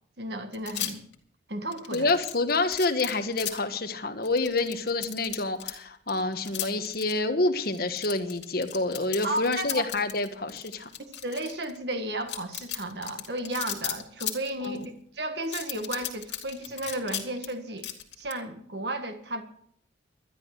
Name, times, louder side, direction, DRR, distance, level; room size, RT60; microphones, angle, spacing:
voice 1, 0.2-1.0 1.5-2.1 9.2-9.8 11.0-17.9 18.2-19.4, right 1 dB, 60° right, 7 dB, 1.6 m, -33 dB
sound 1, 0.5-1.1 1.7-3.6 4.2-5.7 6.1-7.1 7.6-11.8 12.2-14.8 15.4-17.5 17.8-18.3, left 12 dB, 70° left, 2.3 m, -35 dB
voice 2, 1.9-10.9 14.6-14.9, left 2 dB, 55° left, 7 dB, 1.4 m, -28 dB
12.5 x 11.0 x 6.5 m, 0.66 s
head